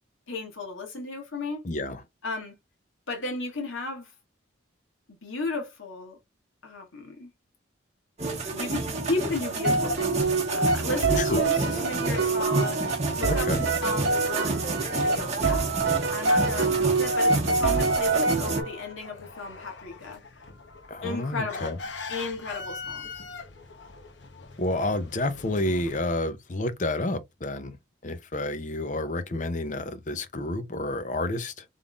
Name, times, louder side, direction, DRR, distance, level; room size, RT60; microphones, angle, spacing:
voice 1, 0.3-1.6 2.2-2.5 3.1-4.1 5.1-6.2 6.6-7.3 8.5-15.7 16.1-20.2 21.0-21.8 22.1-23.1, left 3 dB, 85° left, 1.8 m, -34 dB
voice 2, 1.6-2.0 11.2-11.4 13.3-13.6 20.9-21.8 24.6-27.8 28.0-31.6, left 2 dB, 40° left, 0.6 m, -29 dB
sound 1, 8.2-18.6, right 3 dB, 35° right, 1.2 m, -29 dB
sound 2, 9.6-18.9, right 3 dB, 60° right, 0.9 m, -26 dB
sound 3, 16.1-26.0, left 4 dB, 65° left, 0.9 m, -43 dB
3.6 x 3.6 x 2.4 m
head